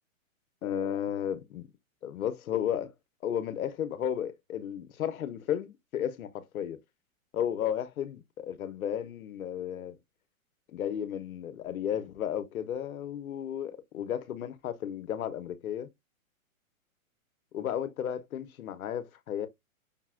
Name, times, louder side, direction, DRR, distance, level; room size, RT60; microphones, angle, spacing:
voice 1, 0.6-1.7 2.0-2.9 3.2-6.8 7.3-10.0 10.7-15.9 17.5-19.5, left 9 dB, 85° left, 0.7 m, -33 dB
5.3 x 2.1 x 2.3 m
hypercardioid pair, 150°, 42 cm